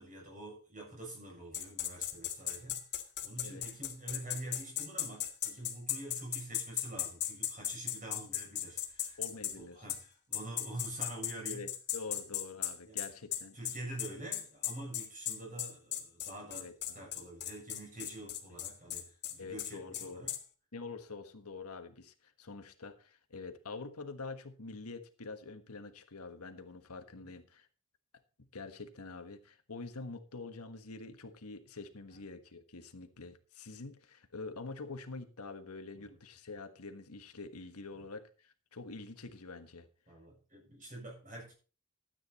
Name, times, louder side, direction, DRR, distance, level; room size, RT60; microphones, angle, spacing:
voice 1, 0.0-2.9 3.2-11.7 12.1-12.2 12.9-13.0 13.5-16.7 16.9-20.3 32.1-32.2 36.0-36.2 37.9-38.1 40.1-41.5, right 1 dB, 35° right, 7.5 m, -46 dB
sound 1, 1.5-9.5 9.9-10.0 10.3-20.4, left 11 dB, 50° left, 1.8 m, -36 dB
voice 2, 9.2-9.8 11.5-13.6 16.5-17.1 18.2-18.3 19.4-20.3 20.7-27.7 28.4-39.9, left 3 dB, 85° left, 1.4 m, -46 dB
13.0 x 9.0 x 4.2 m
head